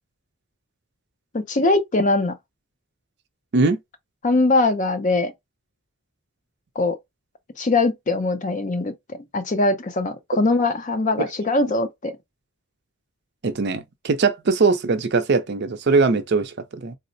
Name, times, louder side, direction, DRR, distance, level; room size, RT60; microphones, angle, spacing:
voice 1, 1.3-2.4 4.2-5.3 6.8-7.0 7.6-12.1, left 2 dB, 35° left, 0.5 m, -21 dB
voice 2, 13.4-16.9, right 4 dB, 50° right, 0.5 m, -21 dB
3.9 x 2.0 x 2.6 m
head